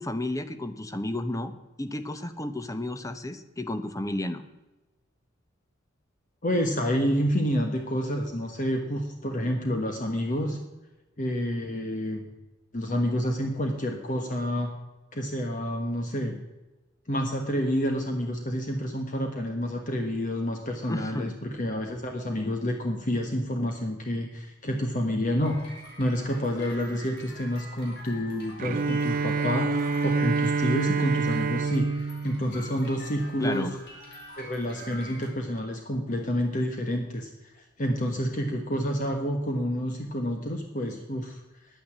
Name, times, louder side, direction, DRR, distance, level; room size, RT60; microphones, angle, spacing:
voice 1, 0.0-1.5 1.8-4.4 20.9-21.3 33.4-33.7, left 1 dB, 15° left, 10 dB, 0.9 m, -32 dB
voice 2, 6.4-10.6 11.2-12.2 12.7-14.7 15.1-16.4 17.1-25.6 26.0-33.7 34.4-37.3 37.8-41.4, equal, 40° left, 3 dB, 1.3 m, -28 dB
sound 1, 25.4-35.3, left 1 dB, 60° left, 4.6 m, -45 dB
Bowed string instrument, 28.6-33.5, right 4 dB, 45° right, 0.4 m, -28 dB
10.5 x 9.4 x 7.3 m, 1.1 s
head